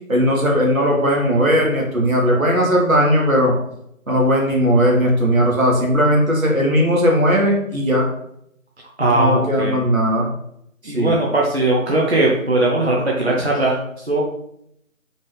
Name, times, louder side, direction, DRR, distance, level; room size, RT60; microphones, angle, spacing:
voice 1, 0.1-3.5 4.1-8.1 9.2-10.3 10.8-11.1, equal, 75° right, -1 dB, 1.6 m, -17 dB
voice 2, 9.0-9.8 10.8-14.2, right 2 dB, 50° right, -4 dB, 0.8 m, -19 dB
4.4 x 3.1 x 3.3 m, 0.75 s
figure-of-eight pair, 170°, 41 cm